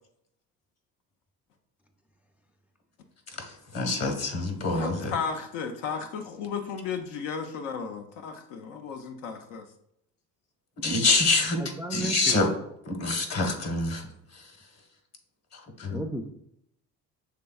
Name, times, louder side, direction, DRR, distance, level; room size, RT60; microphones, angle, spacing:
voice 1, 3.7-5.1 10.8-11.6 11.9-12.5 12.9-14.0 15.8-16.0, left 3 dB, 50° left, 4 dB, 1.2 m, -25 dB
voice 2, 4.7-9.6, left 6 dB, 85° left, 5 dB, 0.6 m, -34 dB
voice 3, 11.6-12.4 15.9-16.3, right 1 dB, 5° right, 5 dB, 0.4 m, -34 dB
6.6 x 3.4 x 2.3 m, 0.76 s
supercardioid pair, 85°, 33 cm